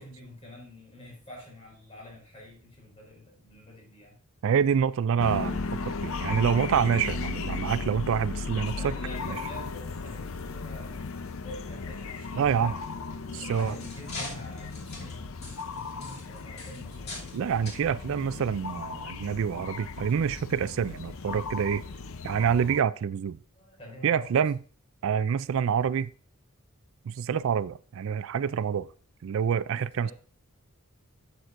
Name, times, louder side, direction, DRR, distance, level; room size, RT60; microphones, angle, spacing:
voice 1, 0.0-4.2 8.4-12.8 13.3-17.6 23.5-24.4 29.7-30.1, equal, 30° left, 5.1 m, -47 dB
voice 2, 4.4-8.9 9.3-9.4 12.4-12.7 13.5-13.7 17.3-21.8 22.2-23.4 24.0-24.6 25.0-26.1 27.1-28.9 29.2-30.1, right 7 dB, 65° right, 0.3 m, -27 dB
sound 1, 5.2-22.8, left 4 dB, 65° left, 0.6 m, -36 dB
sound 2, 13.3-17.4 17.7-17.8 18.6-18.7 19.2-19.3, left 2 dB, 50° left, 2.6 m, -42 dB
11.5 x 8.1 x 2.5 m
head